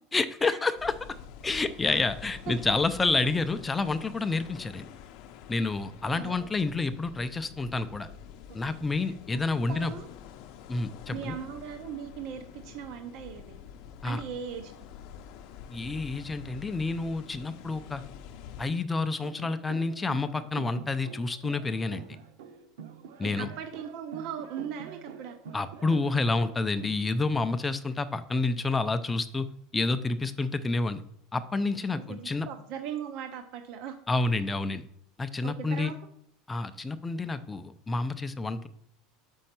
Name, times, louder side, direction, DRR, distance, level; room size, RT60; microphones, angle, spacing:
voice 1, 0.1-0.9 1.4-4.9 5.5-8.1 8.5-9.9 10.7-11.4 14.0-14.2 15.7-18.0 18.6-22.0 23.2-23.5 25.5-29.5 29.7-31.0 31.3-32.5 34.1-34.9 35.2-35.9 36.5-38.7, left 3 dB, 10° left, 10 dB, 0.4 m, -29 dB
sound 1, 0.8-18.7, left 8 dB, 50° left, 0.6 m, -47 dB
voice 2, 2.5-3.0 6.0-6.5 9.0-9.4 9.7-10.1 11.1-13.6 14.0-14.7 23.2-25.3 31.9-33.9 35.4-36.0, right 8 dB, 50° right, 6 dB, 0.7 m, -39 dB
sound 2, 19.2-27.0, right 6 dB, 90° right, 0.8 m, -46 dB
6.3 x 5.4 x 5.9 m, 0.69 s
supercardioid pair, 165°, 0 cm